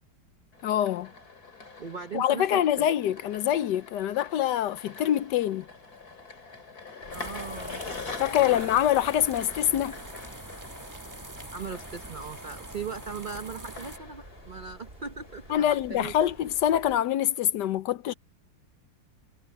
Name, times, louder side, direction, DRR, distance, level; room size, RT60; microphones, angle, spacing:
sound 1, 0.5-17.5, left 4 dB, 50° left, 4.0 m, -45 dB
voice 1, 0.6-1.1 2.1-5.7 8.2-10.0 15.5-18.1, left 11 dB, 70° left, 1.2 m, -25 dB
voice 2, 1.8-2.9 7.1-7.9 8.4-8.7 11.5-16.3, right 5 dB, 65° right, 0.4 m, -39 dB
sound 2, 7.0-17.0, right 2 dB, 30° right, 3.4 m, -51 dB
sound 3, 7.1-14.0, right 1 dB, 10° right, 1.0 m, -44 dB
omnidirectional pair, 2.0 m